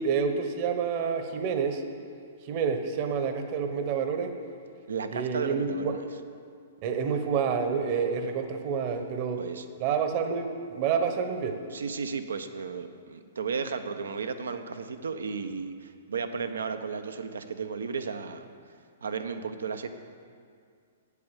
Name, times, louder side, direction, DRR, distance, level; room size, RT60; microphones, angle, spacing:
voice 1, 0.0-1.8 2.5-4.3 5.1-5.9 6.8-9.4 9.8-11.6, right 6 dB, 45° right, 6 dB, 1.1 m, -28 dB
voice 2, 4.9-6.0 9.4-9.7 11.7-18.5 19.0-19.9, right 5 dB, 80° right, 8 dB, 0.8 m, -34 dB
8.4 x 8.0 x 7.2 m, 2.3 s
hypercardioid pair, 120°, 0 cm